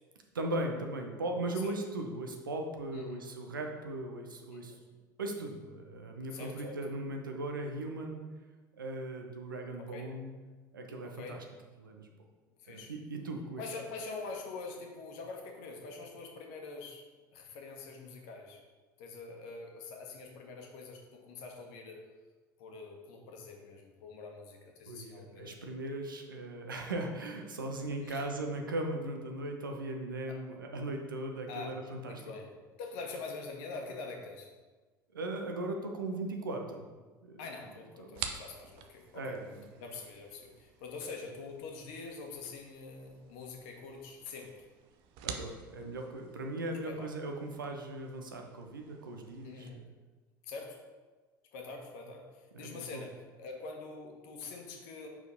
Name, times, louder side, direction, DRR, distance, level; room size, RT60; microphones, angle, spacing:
voice 1, 0.3-4.7 5.2-8.2 8.8-10.3 10.7-11.4 11.8-12.1 12.7-13.6 24.9-32.2 35.1-36.9 37.2-37.4 38.0-38.3 39.1-39.6 45.2-49.9 52.5-53.0, right 2 dB, 75° right, 3 dB, 0.9 m, -38 dB
voice 2, 4.5-4.8 6.3-6.8 9.8-10.1 11.0-11.4 12.6-12.9 13.6-17.0 17.3-18.6 19.0-22.0 22.6-25.6 28.0-28.3 30.3-30.4 31.5-31.7 32.0-32.5 32.8-34.5 37.4-39.4 39.8-44.6 46.8-47.1 49.4-49.9 50.4-50.8 51.5-55.1, left 4 dB, 55° left, 2 dB, 1.2 m, -45 dB
sound 1, 38.1-49.7, right 8 dB, 50° right, 0.7 m, -49 dB
5.8 x 4.6 x 5.2 m, 1.3 s
figure-of-eight pair, 70°, 11 cm